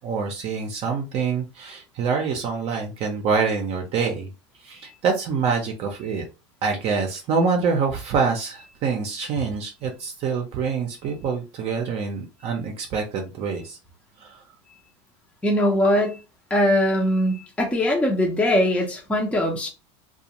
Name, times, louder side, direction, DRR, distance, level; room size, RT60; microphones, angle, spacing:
voice 1, 0.0-4.3 4.6-6.2 6.6-13.8 14.2-14.4, right 5 dB, 45° right, 2 dB, 0.6 m, -26 dB
voice 2, 15.4-16.2 16.5-19.7, left 1 dB, 10° left, -1 dB, 0.6 m, -21 dB
2.4 x 2.3 x 2.9 m, 0.30 s
supercardioid pair, 125°, 15 cm